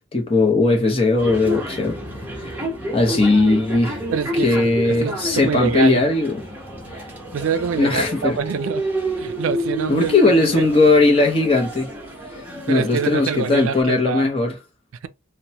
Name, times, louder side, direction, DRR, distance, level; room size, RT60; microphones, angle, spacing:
voice 1, 0.1-2.0 2.4-2.5 2.9-4.0 4.4-6.4 7.8-8.4 9.9-11.9 12.7-14.6, left 2 dB, 25° left, 0.7 m, -18 dB
sound 1, 1.2-13.8, equal, 10° right, 0.8 m, -30 dB
voice 2, 4.1-6.0 7.3-8.8 9.2-10.1 10.5-10.6 12.7-14.3, right 7 dB, 75° right, 0.4 m, -25 dB
2.9 x 2.1 x 2.8 m
head